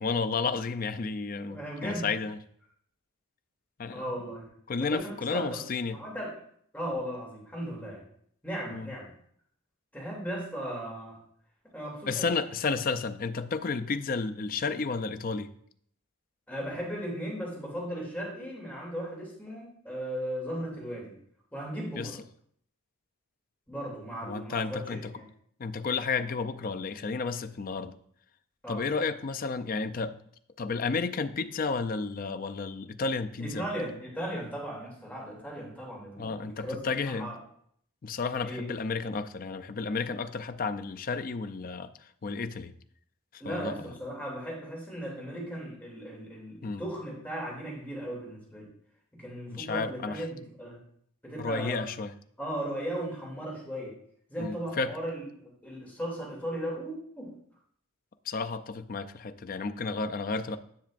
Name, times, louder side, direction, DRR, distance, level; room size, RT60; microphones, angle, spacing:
voice 1, 0.0-2.4 3.8-4.1 4.7-6.0 8.7-8.9 12.1-15.5 22.0-22.2 24.2-25.1 25.6-27.9 28.7-30.1 30.6-33.6 36.2-37.3 38.0-42.7 43.4-43.8 46.6-46.8 49.5-50.2 51.4-52.1 54.4-54.9 58.3-60.6, left 4 dB, 40° left, 9 dB, 0.4 m, -32 dB
voice 2, 1.5-2.1 3.9-4.4 4.8-5.0 5.3-5.6 5.9-6.3 6.7-8.0 8.4-9.1 9.9-11.2 11.7-12.2 16.5-21.1 21.5-22.2 23.7-25.2 28.6-28.8 33.4-36.8 37.0-37.4 38.4-38.7 43.4-48.7 49.1-50.8 51.2-51.9 52.4-53.9 54.3-57.3, equal, 10° left, -4 dB, 2.8 m, -37 dB
10.5 x 6.6 x 2.5 m, 0.65 s
head